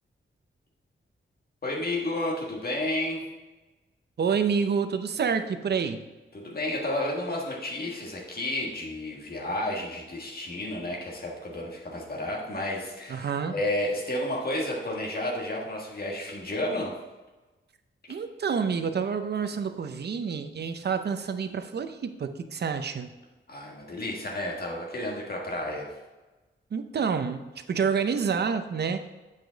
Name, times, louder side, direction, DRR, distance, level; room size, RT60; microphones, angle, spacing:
voice 1, 1.6-3.2 6.3-16.9 23.5-25.9, left 1 dB, 45° left, -2 dB, 1.5 m, -31 dB
voice 2, 4.2-6.0 13.1-13.6 18.1-23.1 26.7-29.1, right 6 dB, 55° right, 8 dB, 0.6 m, -28 dB
8.4 x 5.0 x 3.9 m, 1.1 s
wide cardioid pair, 165°, 21 cm